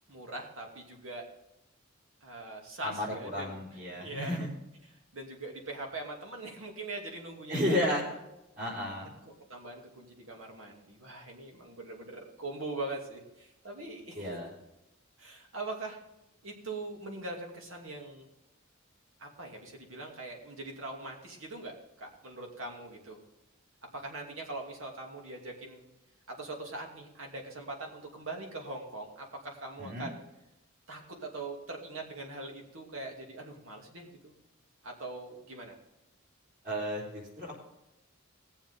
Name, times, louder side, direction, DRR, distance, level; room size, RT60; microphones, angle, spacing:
voice 1, 0.1-1.2 2.2-4.5 5.1-7.9 9.3-14.4 15.2-16.0 16.4-18.3 19.2-23.2 23.9-25.9 26.3-30.2 30.9-34.3 34.8-35.8, right 2 dB, 75° right, 1 dB, 2.6 m, -42 dB
voice 2, 2.8-4.5 7.5-8.0 8.6-9.1 14.1-14.5 29.8-30.1 36.6-37.6, left 1 dB, 45° right, -8 dB, 4.0 m, -33 dB
19.0 x 7.2 x 3.7 m, 0.91 s
head